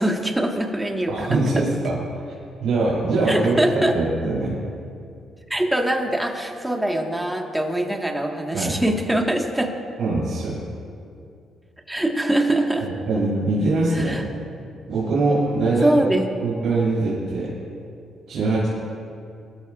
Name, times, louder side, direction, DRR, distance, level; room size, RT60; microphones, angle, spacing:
voice 1, 0.0-1.7 3.3-3.9 5.5-9.7 11.9-12.9 13.9-14.2 15.8-16.2, right 1 dB, 10° right, 2 dB, 1.6 m, -23 dB
voice 2, 1.1-2.0 2.6-3.6 3.9-4.6 8.5-8.8 10.0-10.6 12.8-14.2 14.9-15.9 16.4-17.5 18.3-18.7, right 2 dB, 75° right, -7 dB, 3.4 m, -22 dB
21.0 x 13.5 x 2.5 m, 2.5 s
cardioid pair, 90°, 0 cm